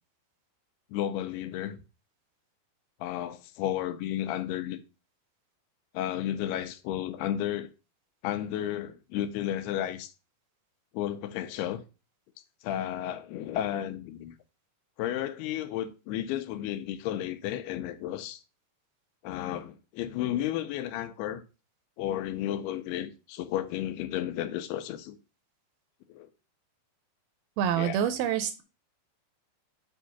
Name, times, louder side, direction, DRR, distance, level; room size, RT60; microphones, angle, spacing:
voice 1, 0.9-1.8 3.0-4.8 5.9-7.7 8.2-10.1 10.9-11.8 12.6-14.4 15.0-18.4 19.2-21.4 22.0-25.2 26.1-26.3 27.8-28.0, left 12 dB, 85° left, 2.6 m, -33 dB
voice 2, 27.6-28.6, right 9 dB, 80° right, 2.3 m, -27 dB
7.2 x 2.7 x 5.7 m
omnidirectional pair, 4.6 m